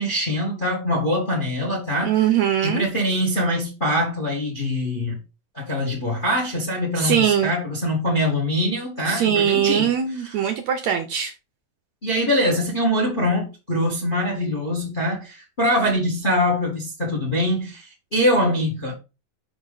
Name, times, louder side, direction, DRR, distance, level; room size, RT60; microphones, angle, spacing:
voice 1, 0.0-2.1 2.6-5.1 5.5-9.9 10.2-10.3 12.0-18.9, equal, 25° left, 1.2 m, -23 dB
voice 2, 2.0-2.9 7.0-7.5 9.1-11.3, right 9 dB, 70° right, 1.8 m, -21 dB
5.9 x 5.0 x 4.0 m
omnidirectional pair, 3.8 m